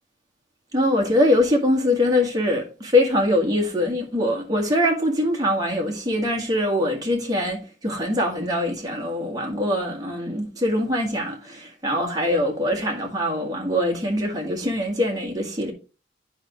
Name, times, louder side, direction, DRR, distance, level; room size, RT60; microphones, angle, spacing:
voice 1, 0.7-15.7, left 1 dB, 20° right, 1.8 m, -23 dB
10.5 x 5.1 x 3.1 m
head